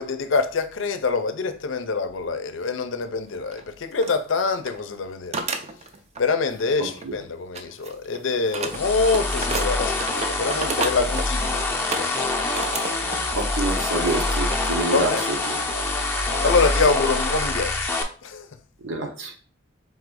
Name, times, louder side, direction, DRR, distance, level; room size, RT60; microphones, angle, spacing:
voice 1, 0.0-5.4 6.2-12.4 14.9-15.2 16.4-17.9 18.2-18.5, left 4 dB, 80° left, 0.5 m, -25 dB
sound 1, 3.5-3.6 4.0-4.1 4.5-4.8 5.3-6.3 6.6-7.2 7.5-13.3 13.6-13.9 14.6-14.7 15.3-15.6, right 3 dB, 35° right, 0.5 m, -32 dB
sound 2, 8.7-18.0, left 2 dB, 10° left, 0.6 m, -25 dB
voice 2, 13.4-15.1 15.5-15.6 18.8-19.3, right 2 dB, 80° right, 1.0 m, -27 dB
3.8 x 2.6 x 4.6 m
head